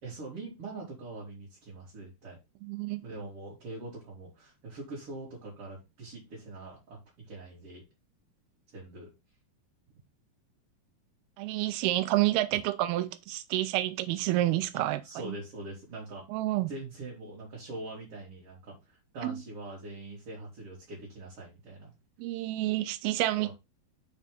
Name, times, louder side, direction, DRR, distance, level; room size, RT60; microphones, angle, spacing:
voice 1, 0.0-2.4 3.0-7.0 7.3-7.8 8.7-9.1 14.7-16.2 16.7-21.9 23.4-23.5, right 2 dB, 40° right, 3.6 m, -43 dB
voice 2, 2.6-3.0 11.4-15.3 16.3-16.7 19.2-19.4 22.2-23.5, right 16 dB, 85° right, 2.6 m, -29 dB
6.4 x 5.5 x 5.3 m
omnidirectional pair, 4.5 m